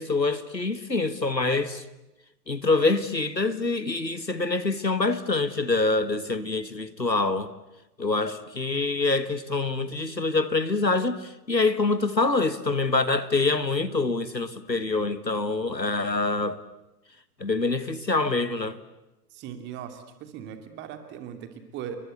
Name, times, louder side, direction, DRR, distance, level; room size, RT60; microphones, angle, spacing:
voice 1, 0.0-1.8 2.5-7.5 8.0-16.6 17.4-18.8, left 3 dB, 90° left, 1.8 m, -25 dB
voice 2, 19.3-22.0, right 9 dB, 20° right, 2.8 m, -39 dB
29.5 x 23.5 x 8.1 m
figure-of-eight pair, 115°, 49 cm